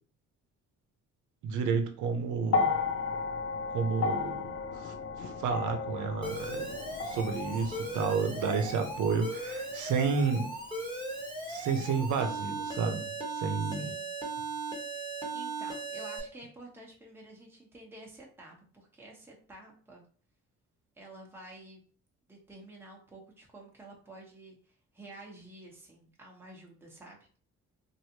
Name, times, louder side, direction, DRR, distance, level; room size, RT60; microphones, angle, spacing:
voice 1, 1.4-2.8 3.7-6.7 7.0-10.5 11.5-13.9, right 5 dB, 75° right, 6 dB, 0.7 m, -31 dB
sound 1, 2.5-10.8 11.9-12.0, left 4 dB, 50° left, 0.4 m, -35 dB
Alarm, 6.2-16.2, right 2 dB, 15° left, 1.1 m, -38 dB
voice 2, 13.6-14.1 14.9-20.0 21.0-21.8 22.3-27.2, right 2 dB, 10° right, -2 dB, 0.9 m, -50 dB
3.1 x 2.6 x 2.8 m, 0.43 s
cardioid pair, 90°, 30 cm